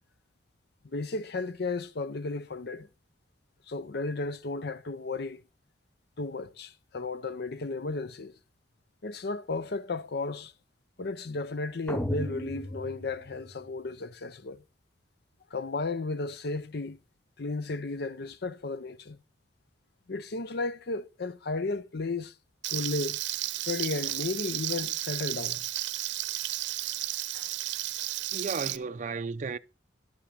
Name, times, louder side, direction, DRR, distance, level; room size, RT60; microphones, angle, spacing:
voice 1, 0.8-2.9 3.7-5.4 6.2-8.3 9.0-10.5 11.0-14.6 15.5-17.0 17.4-19.2 20.1-22.3 22.7-23.2 23.5-25.6 27.3-27.5, left 3 dB, 65° left, 0.7 m, -34 dB
sound 1, 11.9-14.0, equal, 10° left, 0.7 m, -35 dB
Frying (food), 22.6-28.8, right 15 dB, 85° right, 0.6 m, -33 dB
voice 2, 28.3-29.6, right 4 dB, 45° right, 0.5 m, -34 dB
11.5 x 5.8 x 6.6 m
head